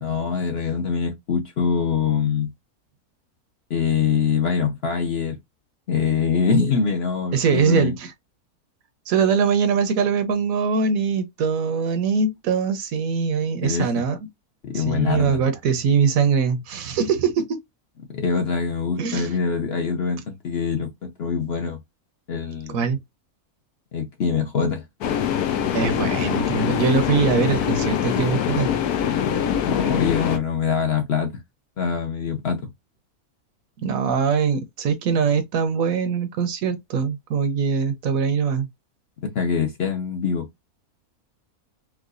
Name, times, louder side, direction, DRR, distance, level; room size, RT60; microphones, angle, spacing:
voice 1, 0.0-2.5 3.7-5.4 5.9-8.0 13.6-13.9 14.6-15.4 18.1-21.8 22.3-22.8 23.9-24.8 29.7-31.3 31.8-32.7 39.3-40.5, left 6 dB, 55° left, 0.8 m, -24 dB
voice 2, 7.3-8.1 9.1-14.2 14.7-17.6 19.0-19.4 22.7-23.0 25.7-28.7 33.8-38.7, right 6 dB, 70° right, 1.1 m, -22 dB
sound 1, 25.0-30.4, left 9 dB, 90° left, 1.2 m, -23 dB
4.7 x 2.2 x 2.4 m
omnidirectional pair, 1.6 m